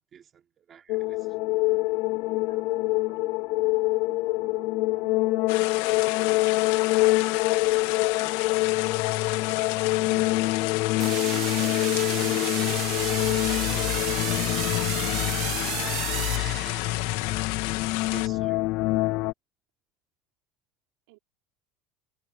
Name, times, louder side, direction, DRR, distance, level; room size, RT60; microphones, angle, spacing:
voice 1, 0.0-1.3 7.8-8.6 9.2-10.6 12.1-17.7 18.1-18.6, right 8 dB, 25° right, 2.9 m, -49 dB
sound 1, 0.9-19.3, left 21 dB, 45° left, 0.3 m, -26 dB
voice 2, 2.5-3.3 3.8-6.4 21.1-21.2, right 25 dB, 70° right, 5.0 m, -56 dB
sound 2, 5.5-18.3, left 20 dB, 70° left, 2.5 m, -33 dB
sound 3, 11.0-17.2, right 16 dB, 40° right, 0.5 m, -33 dB
cardioid pair, 180°, 0 cm